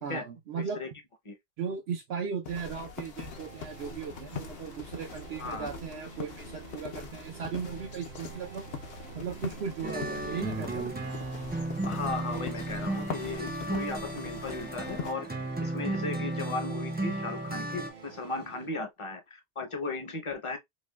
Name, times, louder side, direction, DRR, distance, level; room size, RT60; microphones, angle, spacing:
voice 1, 0.0-0.8 1.6-8.7 9.1-11.0, right 6 dB, 80° right, 0.9 m, -37 dB
voice 2, 0.6-0.9 1.3-1.4 5.4-5.7 11.8-15.3 15.6-20.6, left 3 dB, 35° left, 0.7 m, -36 dB
sound 1, 2.4-15.1, left 6 dB, 70° left, 0.9 m, -43 dB
sound 2, 3.3-18.7, right 7 dB, 50° right, 0.7 m, -49 dB
sound 3, 9.8-17.9, right 2 dB, 15° right, 0.4 m, -34 dB
5.2 x 2.2 x 2.2 m
omnidirectional pair, 1.1 m